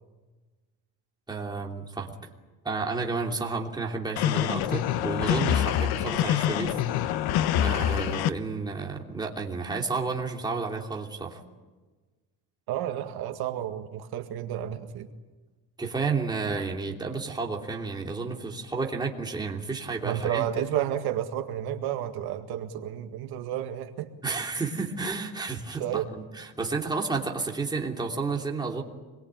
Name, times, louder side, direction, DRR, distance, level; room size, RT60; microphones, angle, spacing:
voice 1, 1.3-2.1 2.6-6.8 7.6-11.4 15.8-20.5 24.2-28.8, right 4 dB, 10° right, 0 dB, 3.0 m, -31 dB
sound 1, 4.2-8.3, left 11 dB, 70° left, 1.2 m, -25 dB
voice 2, 12.7-15.1 20.0-24.1 25.8-26.1, right 11 dB, 70° right, 6 dB, 2.0 m, -31 dB
26.0 x 22.5 x 9.0 m, 1.3 s
cardioid pair, 165°, 39 cm